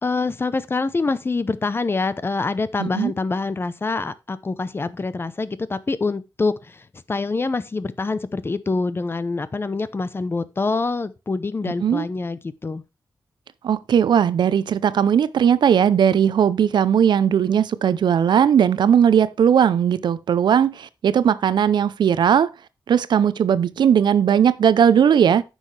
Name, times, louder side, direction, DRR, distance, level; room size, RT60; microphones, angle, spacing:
voice 1, 0.0-12.8, left 3 dB, 30° left, 0.7 m, -25 dB
voice 2, 2.8-3.1 11.8-12.1 13.6-22.5 22.9-25.4, right 8 dB, 85° right, 0.6 m, -18 dB
9.7 x 6.3 x 3.3 m
wide cardioid pair, 105°, 8 cm